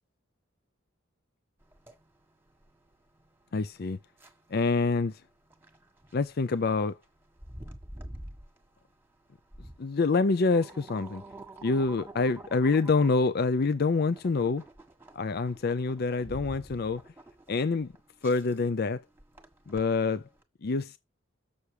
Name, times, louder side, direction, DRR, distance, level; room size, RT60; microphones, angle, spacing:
sound 1, 1.6-20.4, right 1 dB, 10° right, 1.5 m, -49 dB
voice 1, 3.5-4.0 4.5-5.2 6.1-7.0 9.8-11.2 11.6-14.6 15.1-17.0 17.5-17.9 18.2-19.0 19.7-20.2 20.6-21.0, left 4 dB, 50° left, 0.5 m, -26 dB
7.0 x 6.5 x 4.9 m
head